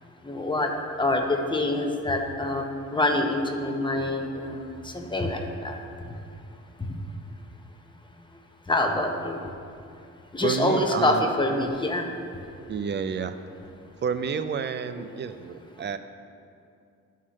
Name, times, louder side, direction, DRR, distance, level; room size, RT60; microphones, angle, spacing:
voice 1, 0.2-0.7 1.0-2.6 2.9-5.8 8.7-9.4 10.3-12.1 15.0-15.1, left 1 dB, 15° left, 3 dB, 0.9 m, -26 dB
voice 2, 10.4-11.2 12.7-13.4 14.0-16.0, right 6 dB, 35° right, 10 dB, 0.5 m, -30 dB
13.0 x 5.7 x 3.2 m, 2.5 s
cardioid pair, 90°, 30 cm